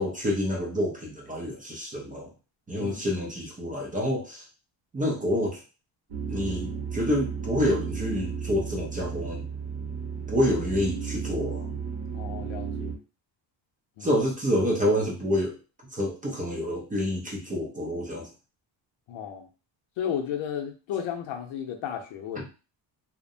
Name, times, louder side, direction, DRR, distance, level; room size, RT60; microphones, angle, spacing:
voice 1, 0.0-2.3 2.7-4.4 4.9-5.6 6.3-9.4 10.3-11.7 14.0-15.6 15.9-18.3, left 1 dB, 20° right, -1 dB, 0.4 m, -28 dB
sound 1, 6.1-12.9, right 6 dB, 55° right, 0.8 m, -34 dB
voice 2, 12.1-13.0 14.0-14.1 19.1-19.5 20.0-22.5, left 9 dB, 70° left, 4 dB, 0.7 m, -33 dB
2.6 x 2.1 x 2.6 m, 0.33 s
cardioid pair, 135°, 49 cm